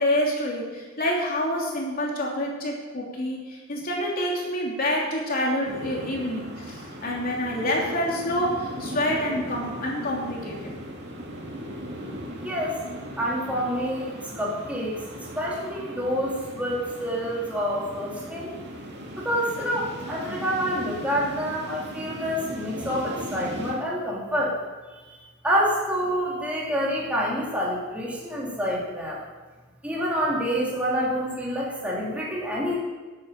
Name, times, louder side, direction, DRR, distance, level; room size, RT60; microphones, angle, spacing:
voice 1, 0.0-10.7, left 1 dB, 45° left, -2 dB, 3.1 m, -27 dB
sound 1, 5.6-23.7, equal, 60° right, 2.4 m, -38 dB
voice 2, 12.4-12.7 13.2-14.9 15.4-18.6 19.1-24.5 25.1-25.2 25.4-29.2 29.8-32.8, equal, 5° right, -5 dB, 2.6 m, -27 dB
11.0 x 9.0 x 6.7 m, 1.3 s
head